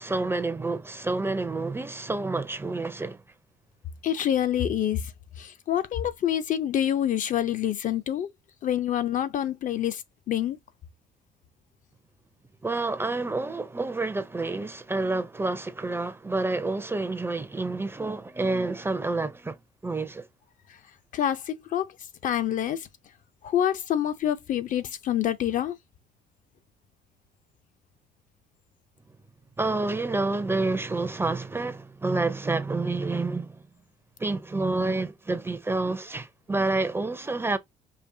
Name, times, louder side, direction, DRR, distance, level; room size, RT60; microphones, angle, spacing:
voice 1, 0.0-3.2 12.6-19.6 19.8-20.3 29.6-33.6 34.2-37.6, right 3 dB, 15° right, 0.5 m, -28 dB
voice 2, 4.0-5.1 5.4-8.3 8.6-10.6 21.1-22.0 22.2-22.9 23.4-25.8, left 10 dB, 50° left, 0.5 m, -27 dB
5.0 x 2.6 x 2.6 m
cardioid pair, 110°, 17 cm